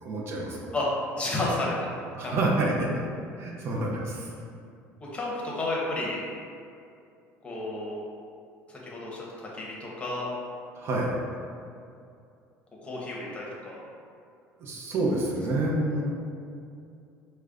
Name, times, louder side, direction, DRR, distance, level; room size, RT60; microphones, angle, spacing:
voice 1, 0.0-0.7 2.1-2.9 3.4-4.3 10.8-11.1 14.6-16.0, right 2 dB, 50° right, -2 dB, 0.6 m, -28 dB
voice 2, 0.7-1.9 2.2-2.3 5.1-6.2 7.4-8.0 8.7-10.3 12.8-13.8, left 2 dB, 20° left, -4 dB, 0.8 m, -31 dB
4.9 x 2.1 x 2.4 m, 2.5 s
cardioid pair, 120°, 6 cm